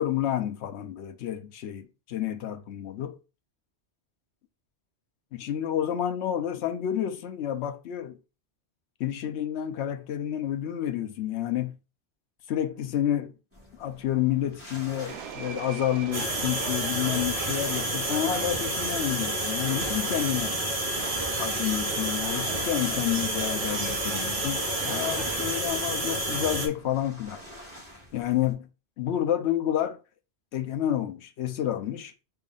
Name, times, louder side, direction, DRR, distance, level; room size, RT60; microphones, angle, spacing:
voice 1, 0.0-3.2 5.3-8.2 9.0-11.7 12.5-13.3 13.8-20.5 21.4-27.4 28.1-28.7 29.0-30.0 30.5-32.1, left 11 dB, 80° left, 0.9 m, -29 dB
sound 1, 13.5-28.5, equal, 10° right, 2.1 m, -49 dB
Subway metro underground, 15.1-25.7, right 7 dB, 80° right, 0.9 m, -41 dB
sound 2, 16.1-26.7, right 1 dB, 35° right, 1.2 m, -29 dB
4.0 x 3.3 x 3.7 m
omnidirectional pair, 1.1 m